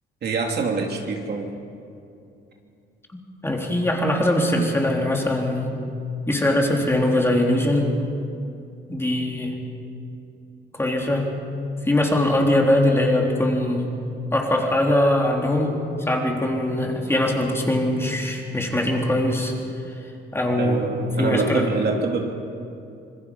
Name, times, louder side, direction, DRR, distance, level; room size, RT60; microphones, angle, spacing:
voice 1, 0.2-1.5 20.6-22.3, right 4 dB, 55° right, 1 dB, 2.8 m, -25 dB
voice 2, 3.4-5.7 6.3-8.0 8.9-9.6 10.7-11.3 11.8-13.9 14.3-19.5 20.3-20.8 21.2-21.7, left 1 dB, 10° left, 0 dB, 3.6 m, -21 dB
26.5 x 21.0 x 5.5 m, 2.5 s
cardioid pair, 90°, 20 cm